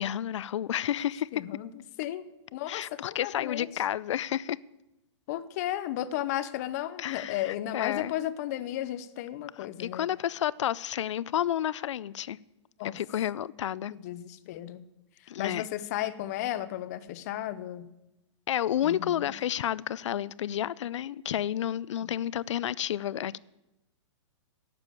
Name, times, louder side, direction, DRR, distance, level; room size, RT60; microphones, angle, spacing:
voice 1, 0.0-1.4 2.7-4.6 7.0-8.1 9.8-12.4 12.8-13.9 15.3-15.7 18.5-23.4, left 11 dB, 75° left, 0.4 m, -31 dB
voice 2, 1.3-1.7 2.0-2.3 2.5-3.8 5.3-10.1 12.8-13.0 13.9-14.9 15.4-17.9 18.8-19.3 22.0-22.1, left 13 dB, 35° left, 0.6 m, -34 dB
11.5 x 6.9 x 8.3 m
hypercardioid pair, 165°, 16 cm